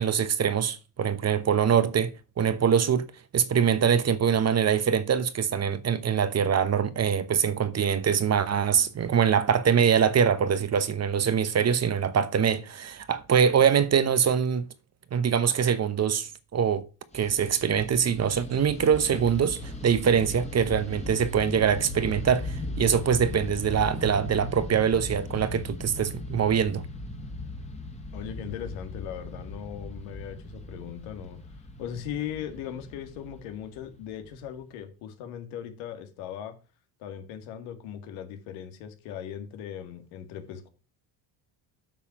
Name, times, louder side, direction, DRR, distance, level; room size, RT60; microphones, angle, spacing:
voice 1, 0.0-3.0 3.3-14.7 15.1-16.8 17.1-26.8, right 7 dB, 35° right, 0.9 m, -24 dB
Fixed-wing aircraft airplane, 17.1-34.6, left 2 dB, 15° left, 1.8 m, -38 dB
voice 2, 28.1-31.4 31.8-36.6 37.0-40.7, left 9 dB, 85° left, 2.1 m, -38 dB
8.5 x 5.7 x 6.0 m
cardioid pair, 105°, 47 cm